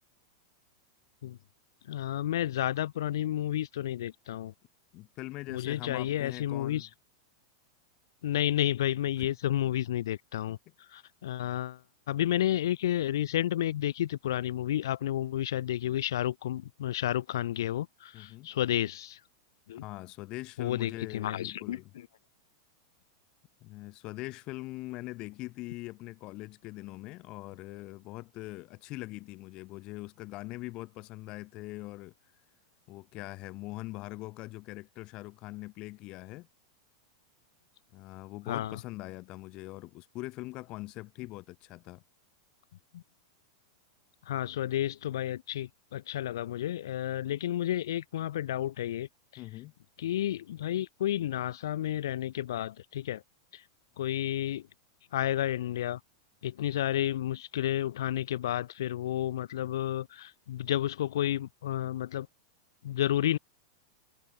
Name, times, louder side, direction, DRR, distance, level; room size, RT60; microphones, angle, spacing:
voice 1, 1.9-4.5 5.5-6.9 8.2-10.6 10.9-11.8 12.1-19.2 19.7-19.8 20.6-22.1 38.5-38.8 42.9-43.0 44.3-49.1 49.3-49.4 50.0-53.2 53.5-53.6 54.0-54.7 55.1-56.0 56.4-62.3 62.8-63.4, left 12 dB, 80° left, 2.8 m, -31 dB
voice 2, 4.9-6.9 9.2-9.3 10.5-10.6 18.1-18.5 19.8-21.9 23.6-32.1 32.9-36.5 37.9-42.0 49.4-49.7, left 20 dB, 40° left, 1.5 m, -42 dB
supercardioid pair, 135°, 2 cm